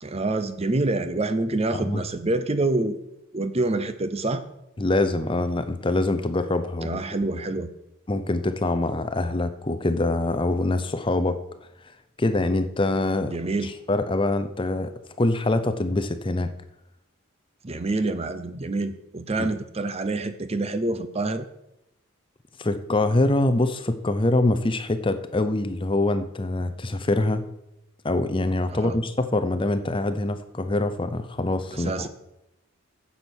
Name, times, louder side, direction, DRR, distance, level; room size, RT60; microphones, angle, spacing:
voice 1, 0.0-3.0 3.3-4.4 6.8-7.7 13.3-13.7 17.6-21.5 28.7-29.0 31.7-32.1, right 2 dB, 30° right, 11 dB, 0.6 m, -27 dB
voice 2, 1.7-2.0 4.8-7.0 8.1-11.4 12.2-13.4 13.6-14.9 15.2-16.5 19.4-19.5 22.6-27.5 28.0-32.1, left 2 dB, 25° left, 11 dB, 0.6 m, -24 dB
9.9 x 7.1 x 6.2 m, 0.89 s
head